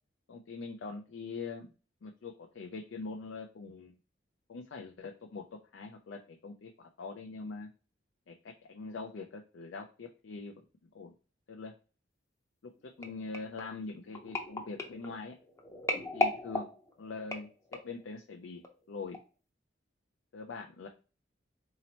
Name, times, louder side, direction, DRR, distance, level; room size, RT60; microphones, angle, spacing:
voice 1, 0.3-1.7 2.0-4.0 4.5-5.4 5.7-7.7 8.3-10.5 10.9-11.1 11.5-11.7 12.6-15.3 16.1-16.7 17.0-18.6 18.9-19.2 20.3-20.9, left 4 dB, 75° left, 2 dB, 0.5 m, -43 dB
sound 1, 13.0-18.0 18.6-18.9 19.1-19.2, left 2 dB, 15° left, 0.6 m, -36 dB
4.1 x 2.9 x 2.8 m, 0.35 s
head